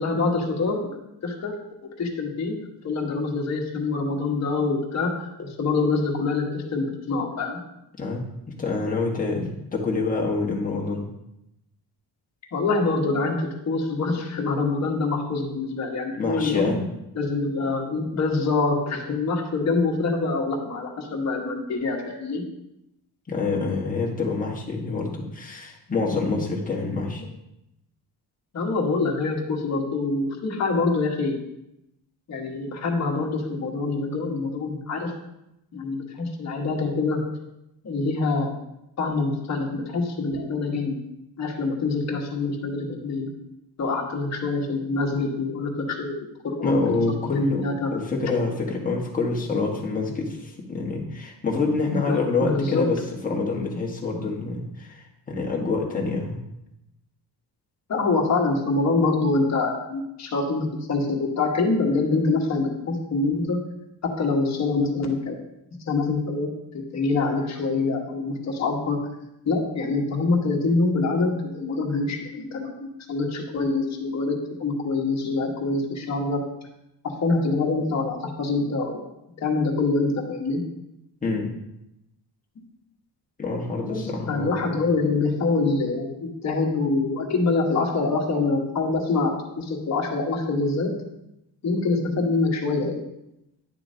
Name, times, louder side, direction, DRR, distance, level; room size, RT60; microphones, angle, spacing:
voice 1, 0.0-1.5 2.0-2.5 2.8-7.6 12.5-16.7 17.1-22.4 28.5-31.4 32.3-35.1 35.7-37.2 37.8-38.5 39.0-41.0 41.4-43.3 43.8-46.8 47.3-47.9 51.9-52.9 57.9-63.6 64.0-65.4 65.9-69.0 69.4-76.4 77.0-79.0 79.4-80.6 83.9-84.0 84.3-90.9 91.6-93.0, left 3 dB, 40° left, 0 dB, 1.5 m, -25 dB
voice 2, 8.6-11.1 16.2-16.8 23.3-27.2 46.6-47.6 47.9-56.4 81.2-81.5 83.4-84.6, left 3 dB, 20° left, -2 dB, 1.4 m, -26 dB
10.5 x 6.9 x 2.8 m, 0.86 s
cardioid pair, 155°, 40 cm